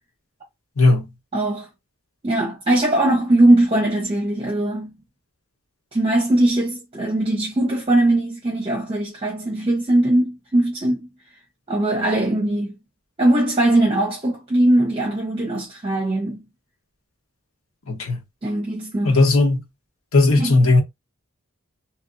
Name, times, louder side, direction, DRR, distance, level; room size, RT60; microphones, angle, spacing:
voice 1, 0.8-1.1 17.9-18.2 19.0-19.6 20.1-20.8, left 2 dB, 85° left, 1.1 m, -16 dB
voice 2, 1.3-1.7 2.2-4.9 5.9-11.1 11.7-12.8 13.2-16.4 18.4-19.2 20.4-20.6, right 1 dB, 25° right, 0.8 m, -20 dB
3.0 x 2.6 x 2.6 m
head